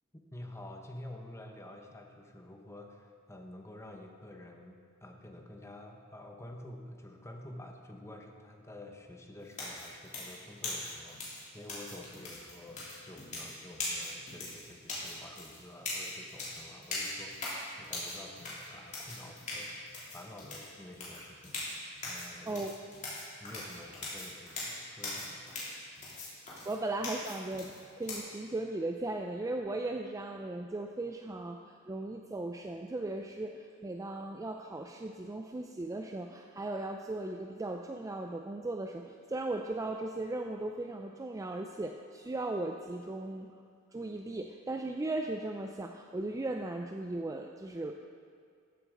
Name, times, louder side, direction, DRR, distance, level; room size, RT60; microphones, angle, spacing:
voice 1, 0.3-17.5 17.8-21.6 22.0-22.6 23.3-25.5, left 1 dB, 15° left, 2 dB, 0.9 m, -49 dB
sound 1, 9.5-28.2, left 2 dB, 35° left, 2.9 m, -41 dB
voice 2, 26.7-43.6 43.9-47.9, right 2 dB, 15° right, 4 dB, 0.4 m, -37 dB
13.5 x 8.0 x 3.8 m, 2.2 s
head